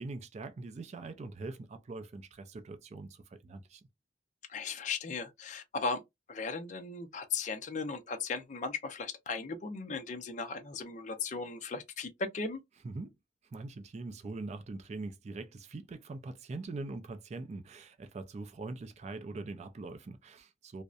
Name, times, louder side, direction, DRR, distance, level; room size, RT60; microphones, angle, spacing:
voice 1, 0.0-3.8 12.8-13.1 13.5-20.8, right 3 dB, 40° right, 0.3 m, -42 dB
voice 2, 4.5-6.0 6.3-12.6, left 4 dB, 45° left, 0.5 m, -37 dB
2.6 x 2.0 x 2.3 m
head